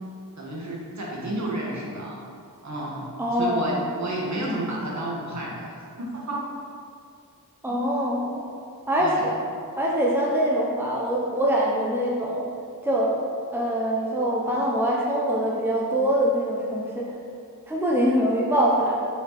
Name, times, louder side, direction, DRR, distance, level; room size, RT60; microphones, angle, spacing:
voice 1, 0.4-2.2 2.6-3.0 3.3-6.4 7.7-7.8 9.0-9.3, right 1 dB, 50° right, -4 dB, 2.1 m, -31 dB
voice 2, 3.2-3.7 7.6-8.4 8.9-9.3 9.8-12.4 12.8-13.2 13.5-17.0 17.7-19.0, equal, 5° right, -4 dB, 1.0 m, -23 dB
7.6 x 6.2 x 4.3 m, 2.3 s
wide cardioid pair, 85°, 35 cm